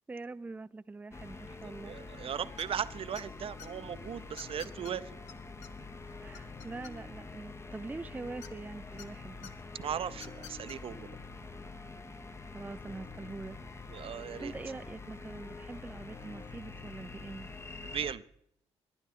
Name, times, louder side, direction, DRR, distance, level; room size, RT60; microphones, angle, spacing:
voice 1, 0.1-2.0 6.2-9.5 12.5-13.6 14.4-17.5, right 3 dB, 15° right, 15 dB, 0.4 m, -43 dB
sound 1, 1.1-18.1, left 3 dB, 25° left, 0.7 m, -46 dB
voice 2, 1.6-5.2 9.7-11.2 13.9-14.5 17.8-18.2, right 9 dB, 55° right, 14 dB, 0.6 m, -38 dB
sound 2, 2.6-2.8 3.1-3.7 4.4-4.9 5.3-5.4 5.6-5.7 6.1-7.2 8.4-9.1 9.4-9.5 10.1-10.8, left 8 dB, 90° left, 0.8 m, -49 dB
21.0 x 9.7 x 3.7 m, 0.72 s
cardioid pair, 75°, 11 cm